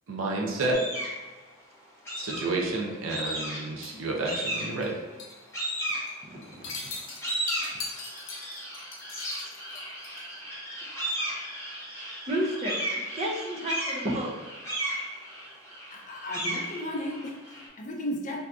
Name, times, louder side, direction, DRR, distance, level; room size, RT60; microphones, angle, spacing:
voice 1, 0.1-0.8 2.2-5.0, right 2 dB, 80° right, -1 dB, 0.5 m, -30 dB
sound 1, 0.7-1.2 2.0-2.7 3.1-3.8 4.2-4.9 5.5-6.5 6.9-17.7, right 1 dB, 15° left, 1.0 m, -35 dB
sound 2, 3.8-4.9 5.2-5.4 5.7-6.1 6.4-10.3, left 3 dB, 85° left, 0.7 m, -40 dB
voice 2, 6.3-7.0 12.3-14.4, right 1 dB, 35° right, -1 dB, 0.5 m, -32 dB
voice 3, 15.9-18.5, left 1 dB, 40° left, 1 dB, 0.5 m, -35 dB
2.7 x 2.4 x 3.4 m, 1.2 s
head